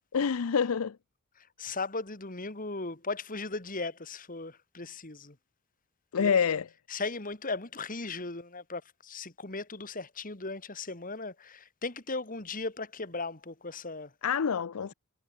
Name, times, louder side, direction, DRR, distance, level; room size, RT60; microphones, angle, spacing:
voice 1, 0.1-1.0 6.1-6.7 14.2-14.9, left 6 dB, 70° left, 0.5 m, -27 dB
voice 2, 1.6-5.4 6.2-6.4 6.9-14.1, left 3 dB, 40° left, 2.4 m, -37 dB
head